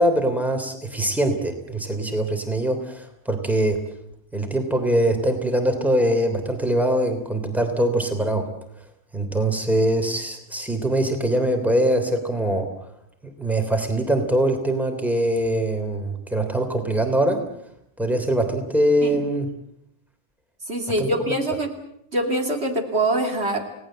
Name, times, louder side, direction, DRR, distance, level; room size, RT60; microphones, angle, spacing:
voice 1, 0.0-3.8 4.3-8.4 9.1-12.7 13.2-17.4 18.0-19.5 21.0-21.1, right 1 dB, ahead, 5 dB, 3.1 m, -22 dB
voice 2, 20.7-21.7 22.1-23.6, right 1 dB, 55° right, 4 dB, 2.9 m, -24 dB
29.0 x 18.5 x 7.6 m, 0.75 s
omnidirectional pair, 1.3 m